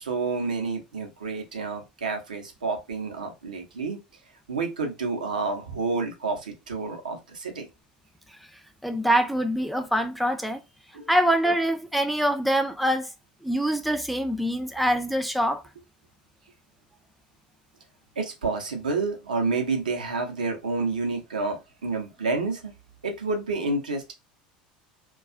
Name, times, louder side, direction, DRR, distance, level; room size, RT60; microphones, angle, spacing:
voice 1, 0.0-4.0 4.5-7.7 10.9-11.4 18.2-22.7 23.0-24.1, right 3 dB, 80° right, 0.6 m, -29 dB
voice 2, 8.8-10.6 11.1-13.1 13.4-15.6, equal, ahead, 0.3 m, -24 dB
2.3 x 2.3 x 2.5 m
figure-of-eight pair, 75°, 4 cm